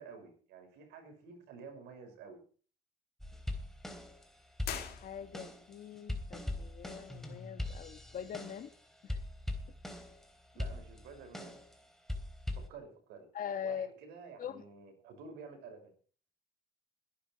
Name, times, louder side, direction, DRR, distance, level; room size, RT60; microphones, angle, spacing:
voice 1, 0.0-2.4 10.5-11.6 12.6-15.9, right 5 dB, 85° right, 5.9 m, -51 dB
sound 1, 3.2-4.2 4.6-8.7 9.1-10.2 10.6-11.7 12.1-12.7, left 1 dB, ahead, 3.4 m, -41 dB
sound 2, 4.6-5.7, left 10 dB, 70° left, 3.0 m, -43 dB
voice 2, 5.0-8.7 9.0-9.2 13.3-13.9 14.4-14.6, left 8 dB, 55° left, 1.4 m, -42 dB
20.0 x 11.0 x 4.8 m
cardioid pair, 110°, 17 cm